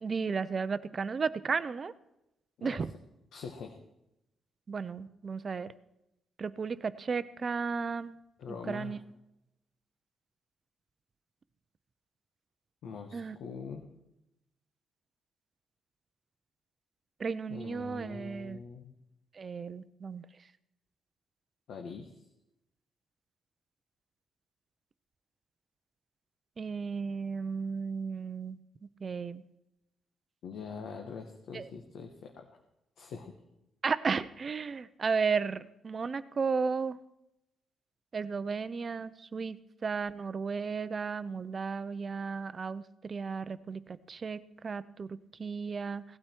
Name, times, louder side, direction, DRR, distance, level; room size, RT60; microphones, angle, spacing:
voice 1, 0.0-1.9 2.6-2.9 4.7-5.7 6.4-8.2 8.7-9.0 13.1-13.4 17.2-18.6 19.4-20.2 26.6-28.6 29.0-29.4 31.5-31.7 33.8-37.0 38.1-39.6 39.8-43.8 44.1-45.1 45.4-46.0, right 5 dB, 35° right, 14 dB, 0.5 m, -34 dB
voice 2, 3.3-3.8 8.4-9.0 12.8-13.8 17.5-18.9 21.7-22.1 30.4-32.5 33.0-33.3, left 5 dB, 75° left, 4 dB, 1.3 m, -43 dB
17.5 x 12.5 x 4.5 m, 0.88 s
cardioid pair, 145°, 0 cm